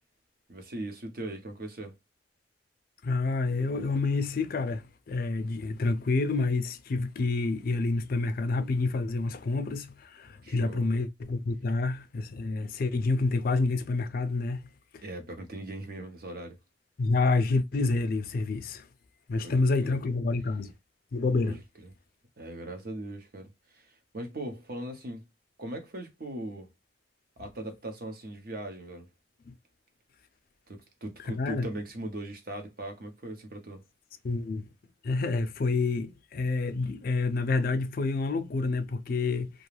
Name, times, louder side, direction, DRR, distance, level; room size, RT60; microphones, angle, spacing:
voice 1, 0.5-1.9 10.4-10.9 15.0-16.6 19.4-20.0 21.4-21.9 22.4-25.2 25.6-26.7 27.4-29.1 30.7-33.8, right 1 dB, 55° right, 0.8 m, -39 dB
voice 2, 3.0-14.6 14.9-15.0 17.0-18.8 19.3-20.7 21.1-21.6 31.3-31.7 34.2-34.6 35.0-39.5, left 3 dB, 55° left, 0.4 m, -28 dB
2.5 x 2.2 x 3.0 m
head